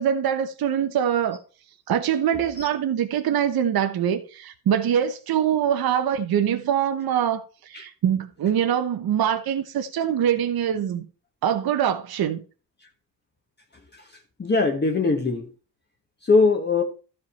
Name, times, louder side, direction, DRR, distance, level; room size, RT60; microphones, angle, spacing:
voice 1, 0.0-1.4 1.9-11.0 11.4-12.4, right 9 dB, 60° right, 1.1 m, -23 dB
voice 2, 14.4-15.5 16.2-16.8, left 3 dB, 25° left, 1.3 m, -21 dB
13.5 x 5.4 x 4.3 m
cardioid pair, 150°, 41 cm